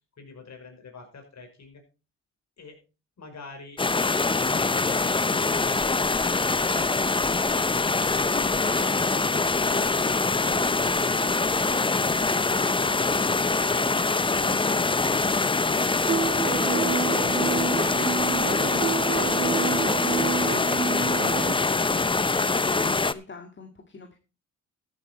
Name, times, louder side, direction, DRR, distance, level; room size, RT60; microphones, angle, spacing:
voice 1, 0.2-1.8 2.6-2.8 3.2-3.8, left 4 dB, 55° left, 4 dB, 5.3 m, -46 dB
sound 1, 3.8-23.1, left 3 dB, 15° left, 0.7 m, -24 dB
voice 2, 8.2-16.0 16.5-22.1 22.3-24.2, left 4 dB, 35° left, 4 dB, 2.1 m, -42 dB
sound 2, 16.1-21.5, right 6 dB, 30° right, 0.5 m, -29 dB
14.0 x 8.8 x 4.3 m, 0.32 s
supercardioid pair, 65°, 32 cm